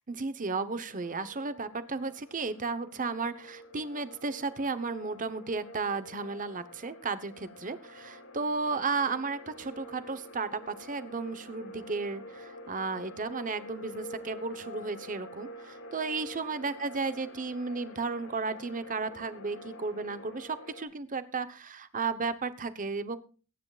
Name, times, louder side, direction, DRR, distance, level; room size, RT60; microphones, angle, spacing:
voice 1, 0.1-23.2, right 4 dB, 35° right, 12 dB, 1.0 m, -34 dB
sound 1, 0.9-20.8, left 1 dB, 75° left, 5.0 m, -48 dB
23.0 x 9.7 x 2.4 m, 0.36 s
head